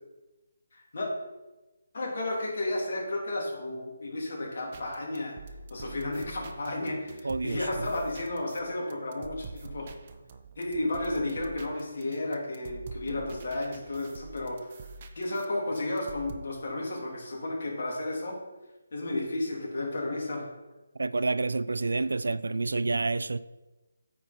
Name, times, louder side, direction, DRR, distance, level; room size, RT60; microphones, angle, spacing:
voice 1, 0.7-1.1 1.9-5.4 5.7-9.9 10.6-14.6 15.1-18.4 18.9-20.5, left 2 dB, 55° left, 2.9 m, -32 dB
sound 1, 4.7-16.4, right 4 dB, 40° right, 0.7 m, -46 dB
voice 2, 7.2-7.6 21.0-23.4, right 3 dB, 75° right, 0.4 m, -28 dB
9.1 x 5.6 x 4.3 m
figure-of-eight pair, 150°, 0 cm